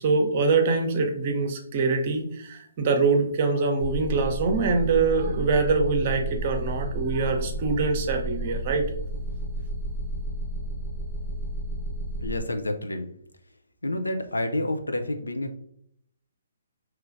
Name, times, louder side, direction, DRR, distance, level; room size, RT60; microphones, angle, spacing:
voice 1, 0.0-8.9, right 4 dB, 35° right, 5 dB, 0.8 m, -24 dB
sound 1, 3.8-12.4, right 1 dB, 60° left, 1.2 m, -32 dB
voice 2, 12.2-13.1 13.8-15.5, left 1 dB, 80° left, 6 dB, 0.5 m, -29 dB
4.7 x 3.1 x 2.5 m, 0.68 s
figure-of-eight pair, 130°, 0 cm